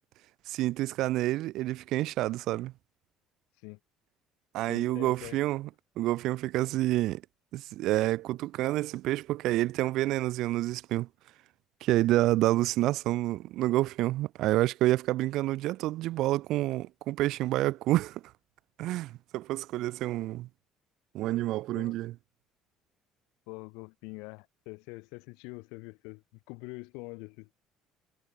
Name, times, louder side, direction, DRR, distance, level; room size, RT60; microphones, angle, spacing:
voice 1, 0.5-2.7 4.5-5.7 6.0-7.2 7.5-11.1 11.8-18.2 18.8-20.5 21.1-22.1, right 16 dB, 70° right, 2.0 m, -28 dB
voice 2, 4.7-5.4 21.7-21.9 23.5-27.5, left 30 dB, 90° left, 6.2 m, -44 dB
cardioid pair, 100°, 0 cm